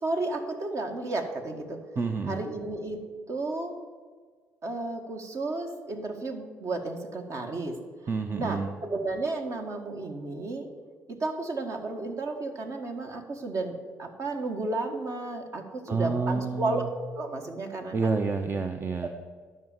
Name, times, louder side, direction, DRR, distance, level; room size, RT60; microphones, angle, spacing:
voice 1, 0.0-1.8 2.3-3.0 3.3-3.7 4.6-7.7 8.0-10.7 11.1-16.8 17.1-18.2 19.0-19.1, right 2 dB, 50° right, 4 dB, 1.7 m, -33 dB
voice 2, 2.0-2.4 8.1-8.7 15.9-16.9 17.9-19.1, right 4 dB, 30° right, 6 dB, 0.8 m, -29 dB
10.5 x 5.7 x 7.3 m, 1.5 s
hypercardioid pair, 55°, 7 cm